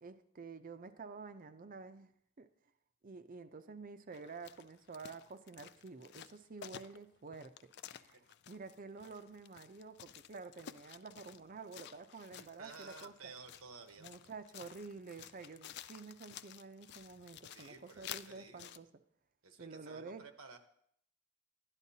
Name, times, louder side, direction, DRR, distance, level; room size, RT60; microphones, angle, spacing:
voice 1, 0.0-2.1 2.4-2.5 3.0-7.5 7.9-13.3 14.0-18.9 19.6-20.2, right 4 dB, 40° right, 10 dB, 0.5 m, -50 dB
sound 1, 4.1-18.8, left 10 dB, 50° left, 0.3 m, -53 dB
voice 2, 12.3-14.1 17.5-18.8 19.4-20.6, right 4 dB, 80° right, 7 dB, 1.0 m, -54 dB
12.5 x 10.5 x 2.8 m, 0.68 s
head